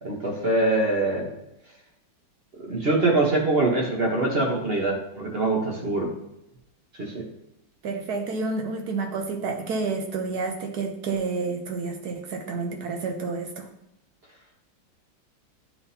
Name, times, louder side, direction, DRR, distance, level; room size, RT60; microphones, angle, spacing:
voice 1, 0.0-1.3 2.6-6.1 7.0-7.2, right 2 dB, 40° right, -1 dB, 1.0 m, -24 dB
voice 2, 7.8-13.7, right 4 dB, 65° right, 4 dB, 1.1 m, -29 dB
9.7 x 3.8 x 2.8 m, 0.83 s
omnidirectional pair, 2.1 m